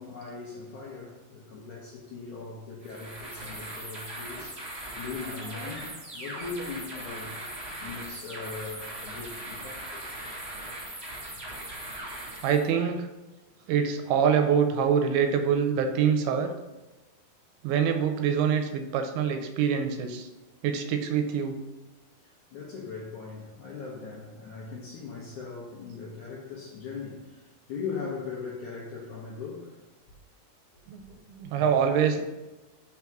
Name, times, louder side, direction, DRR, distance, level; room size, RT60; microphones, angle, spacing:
voice 1, 0.0-7.5 7.8-10.0 11.1-11.2 12.0-12.1 22.2-29.8, left 5 dB, 75° left, -4 dB, 1.8 m, -40 dB
sound 1, 2.8-12.7, right 1 dB, 30° right, 1.2 m, -39 dB
voice 2, 5.2-5.8 6.6-6.7 12.4-13.1 13.7-16.5 17.6-20.3 20.6-21.6 30.9-32.2, right 7 dB, 80° right, 6 dB, 2.5 m, -25 dB
5.9 x 3.6 x 5.8 m, 1.1 s
omnidirectional pair, 4.6 m